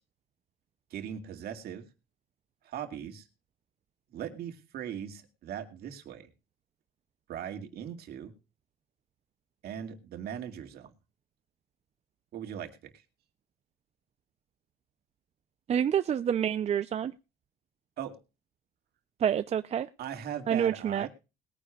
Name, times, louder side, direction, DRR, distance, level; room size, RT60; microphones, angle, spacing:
voice 1, 0.9-1.9 2.6-3.3 4.1-6.3 7.3-8.3 9.6-10.9 12.3-13.0 18.0-18.2 20.0-21.1, right 9 dB, 70° right, 2.2 m, -39 dB
voice 2, 15.7-17.1 19.2-19.9 20.5-21.1, right 9 dB, 40° right, 0.5 m, -27 dB
20.5 x 9.9 x 2.3 m
cardioid pair, 110°, 17 cm